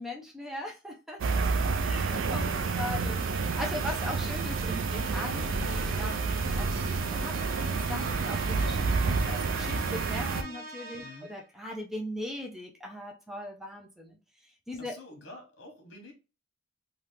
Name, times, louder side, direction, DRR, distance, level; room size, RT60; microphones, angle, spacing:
voice 1, 0.0-2.5 2.8-3.2 3.6-14.2 14.7-15.0, left 1 dB, ahead, 0.6 m, -39 dB
sound 1, 1.2-10.4, right 4 dB, 75° right, 0.4 m, -29 dB
voice 2, 2.6-3.5 3.9-4.1 11.0-11.3 14.8-16.1, left 2 dB, 60° left, 1.2 m, -49 dB
sound 2, 2.9-11.4, right 2 dB, 45° right, 0.8 m, -44 dB
2.9 x 2.4 x 3.4 m
head